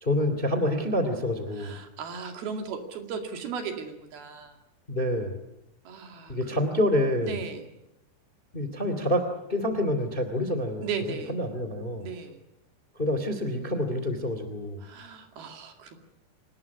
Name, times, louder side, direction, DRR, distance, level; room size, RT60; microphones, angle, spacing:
voice 1, 0.0-1.8 4.9-5.4 6.3-7.4 8.5-10.9 11.3-12.1 12.9-14.8, left 1 dB, 15° left, 9 dB, 2.0 m, -27 dB
voice 2, 1.5-4.6 5.9-6.6 7.2-7.7 10.8-11.4 12.0-12.4 14.8-16.0, right 5 dB, 65° right, 5 dB, 4.1 m, -36 dB
26.0 x 20.0 x 9.6 m, 0.89 s
omnidirectional pair, 4.9 m